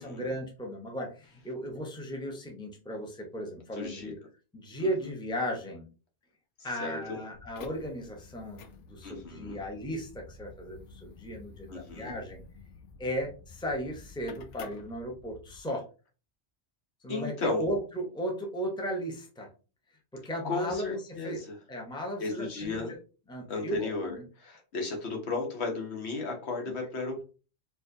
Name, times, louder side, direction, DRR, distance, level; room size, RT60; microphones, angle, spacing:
voice 1, 0.0-4.1 4.5-5.9 6.6-12.4 13.0-15.8 17.0-19.5 20.1-21.4 21.7-22.8 23.3-23.9 26.7-26.8, equal, 5° left, 1 dB, 0.7 m, -36 dB
voice 2, 3.7-4.1 6.8-7.2 9.0-9.6 11.7-12.1 17.1-17.7 20.4-21.6 22.2-22.9 23.5-27.2, left 3 dB, 70° left, 1 dB, 1.3 m, -34 dB
sound 1, 7.3-15.6, left 4 dB, 85° left, 0.9 m, -50 dB
4.5 x 2.6 x 2.6 m, 0.34 s
omnidirectional pair, 1.2 m